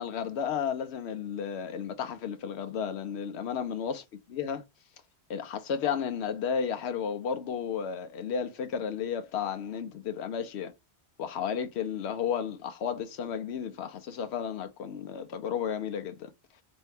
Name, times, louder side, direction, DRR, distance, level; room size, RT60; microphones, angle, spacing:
voice 1, 0.0-4.0 4.3-4.6 5.3-10.7 11.2-16.3, left 7 dB, 80° left, 0.9 m, -33 dB
4.2 x 2.7 x 3.3 m
omnidirectional pair, 1.1 m